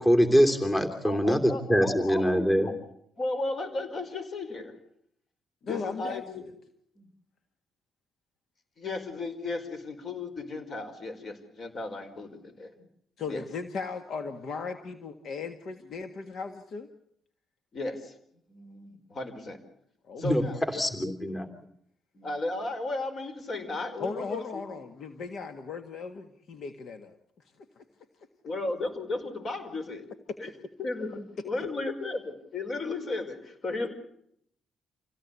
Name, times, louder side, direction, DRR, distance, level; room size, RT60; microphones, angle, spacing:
voice 1, 0.0-2.7 20.2-20.4 20.7-21.5, equal, 15° left, 6 dB, 3.0 m, -24 dB
voice 2, 1.0-2.8 3.2-4.7 5.6-6.4 7.0-7.1 8.8-12.9 13.3-13.5 17.7-18.1 18.5-19.6 20.2-21.4 22.1-24.6 28.4-30.1 30.4-33.9, left 2 dB, 50° left, 8 dB, 5.2 m, -35 dB
voice 3, 5.7-6.5 13.2-16.9 20.1-20.6 24.0-27.2, left 5 dB, 65° left, 8 dB, 1.7 m, -37 dB
27.0 x 17.0 x 8.3 m, 0.71 s
cardioid pair, 90°, 0 cm